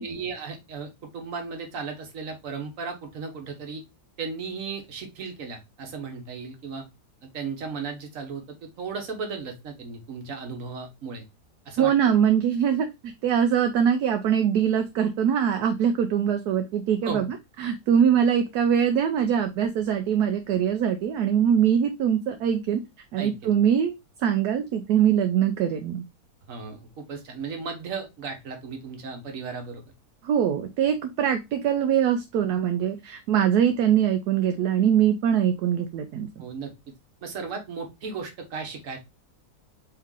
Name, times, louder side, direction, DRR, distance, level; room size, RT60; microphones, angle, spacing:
voice 1, 0.0-3.8 4.2-6.9 7.2-11.2 11.6-11.9 17.0-17.3 23.2-23.5 26.5-29.8 36.4-36.7 37.2-39.0, right 5 dB, 55° right, 4 dB, 1.4 m, -35 dB
voice 2, 11.8-17.3 17.6-22.8 23.1-23.9 24.2-26.0 30.2-36.3, right 8 dB, 75° right, 7 dB, 1.0 m, -23 dB
3.4 x 3.2 x 3.5 m, 0.22 s
omnidirectional pair, 1.8 m